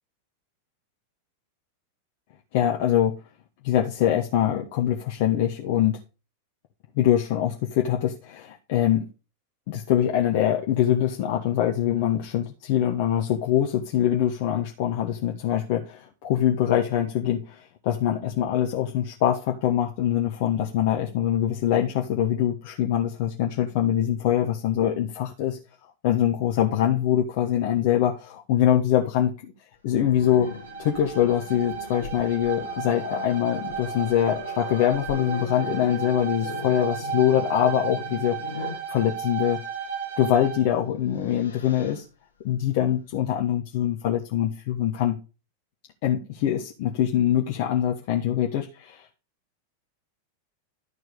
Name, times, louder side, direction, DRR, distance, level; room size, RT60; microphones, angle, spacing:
voice 1, 2.5-3.2 3.6-6.0 7.0-9.1 9.7-25.6 26.0-29.3 29.8-30.5 30.8-39.6 40.2-42.0 42.4-45.2 46.0-49.0, left 11 dB, 50° left, 1 dB, 1.3 m, -24 dB
Growling, 29.9-38.9 40.3-40.5 40.9-42.0, left 4 dB, 70° left, 2.0 m, -39 dB
Bowed string instrument, 30.2-40.7, right 7 dB, 60° right, 5.8 m, -34 dB
13.0 x 4.7 x 5.0 m, 0.32 s
figure-of-eight pair, 90°, 0 cm